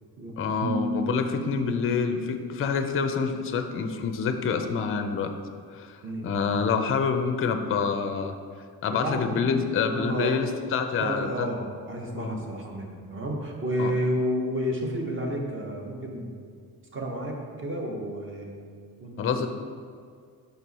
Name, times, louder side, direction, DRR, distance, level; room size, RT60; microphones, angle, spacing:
voice 1, 0.4-5.3 5.7-6.0 6.2-8.4 8.8-11.5 12.1-12.4 13.8-13.9 19.2-19.5, left 5 dB, 35° left, 7 dB, 0.4 m, -27 dB
sound 1, 0.6-3.8, right 1 dB, 85° right, 0.6 m, -34 dB
voice 2, 8.9-9.4 9.9-10.4 11.0-16.3 16.9-18.6 19.0-19.5, equal, 30° right, 0 dB, 0.9 m, -31 dB
5.3 x 4.5 x 4.1 m, 2.1 s
cardioid pair, 130°, 38 cm